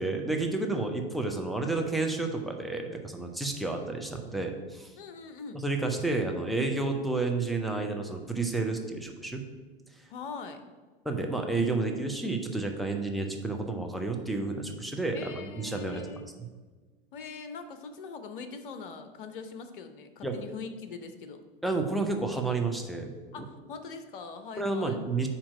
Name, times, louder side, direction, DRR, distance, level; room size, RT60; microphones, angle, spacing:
voice 1, 0.0-4.9 5.5-9.4 11.0-16.0 20.2-20.3 21.6-23.1 23.4-23.5 24.6-25.3, right 3 dB, ahead, 2 dB, 0.8 m, -30 dB
voice 2, 5.0-5.6 10.1-10.6 15.1-16.3 17.1-21.4 23.3-25.0, left 5 dB, 60° left, 9 dB, 0.8 m, -42 dB
8.8 x 3.0 x 6.1 m, 1.3 s
figure-of-eight pair, 80°, 29 cm